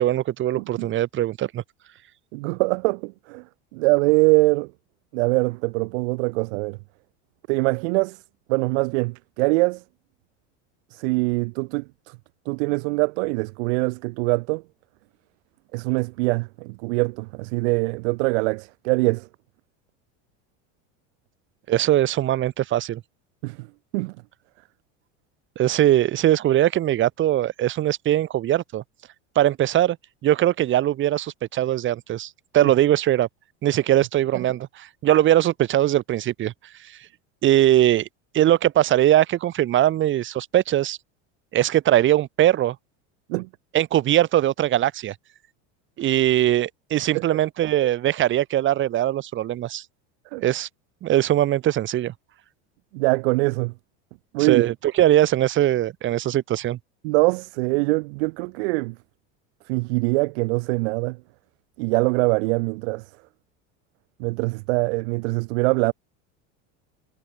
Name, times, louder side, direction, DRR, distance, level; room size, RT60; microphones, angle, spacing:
voice 1, 0.0-1.6 21.7-23.0 25.5-28.8 29.3-30.0 30.2-33.3 33.6-36.5 36.8-36.9 37.4-38.1 38.3-41.0 41.5-42.7 43.7-45.1 46.0-49.8 50.4-50.7 51.0-52.1 54.4-56.8, right 13 dB, 35° right, 1.6 m, -21 dB
voice 2, 0.6-0.9 2.3-3.4 3.7-4.7 5.1-6.8 7.5-8.2 8.5-9.8 10.9-12.2 12.5-14.6 15.7-19.3 23.4-23.7 23.9-24.1 32.6-32.7 43.3-43.5 50.3-50.5 52.9-53.7 54.3-54.7 57.0-58.9 59.7-61.2 61.8-63.0 64.2-65.9, right 27 dB, 70° right, 4.1 m, -23 dB
supercardioid pair, 145°, 35 cm